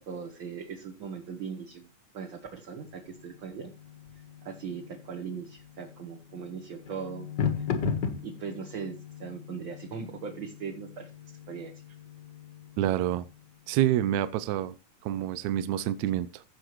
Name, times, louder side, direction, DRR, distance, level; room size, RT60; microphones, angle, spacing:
voice 1, 0.0-1.9 2.1-3.7 4.4-7.3 8.2-8.9 9.2-11.1 11.5-11.7, right 6 dB, 50° right, 1.6 m, -39 dB
sound 1, 2.8-13.6, left 6 dB, 50° left, 1.4 m, -38 dB
voice 2, 12.8-13.3 13.7-14.8 15.0-16.4, right 12 dB, 80° right, 1.8 m, -27 dB
15.5 x 7.0 x 3.1 m
omnidirectional pair, 3.7 m